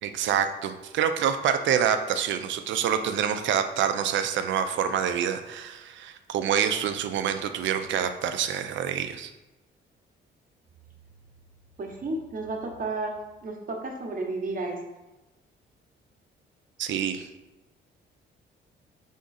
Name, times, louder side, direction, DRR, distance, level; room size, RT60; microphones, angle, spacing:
voice 1, 0.0-9.3 16.8-17.3, right 8 dB, 70° right, 8 dB, 0.5 m, -27 dB
voice 2, 11.8-14.8, right 2 dB, 45° right, 2 dB, 0.9 m, -32 dB
3.7 x 3.6 x 4.0 m, 1.0 s
cardioid pair, 90°, 20 cm